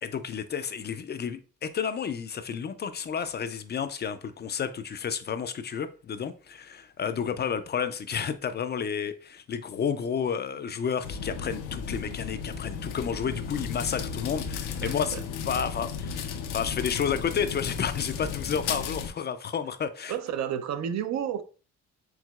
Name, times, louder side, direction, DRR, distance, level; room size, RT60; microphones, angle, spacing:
voice 1, 0.0-20.1, left 7 dB, 35° left, 0.4 m, -31 dB
sound 1, 11.0-19.1, left 6 dB, 85° left, 0.6 m, -34 dB
voice 2, 14.8-15.2 20.1-21.4, right 9 dB, 65° right, 0.5 m, -31 dB
4.7 x 3.5 x 2.3 m
cardioid pair, 90°, 30 cm